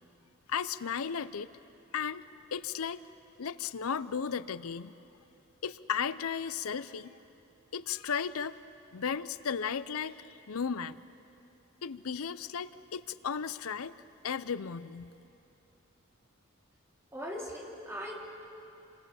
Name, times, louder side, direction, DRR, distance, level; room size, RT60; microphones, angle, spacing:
voice 1, 0.5-1.5 1.9-2.2 2.5-3.0 3.4-4.9 5.6-7.2 7.7-8.6 8.9-11.0 11.8-13.9 14.2-15.1, left 7 dB, 85° left, 15 dB, 0.6 m, -35 dB
voice 2, 17.1-18.2, equal, 10° right, -3 dB, 3.4 m, -39 dB
27.5 x 24.5 x 7.0 m, 3.0 s
head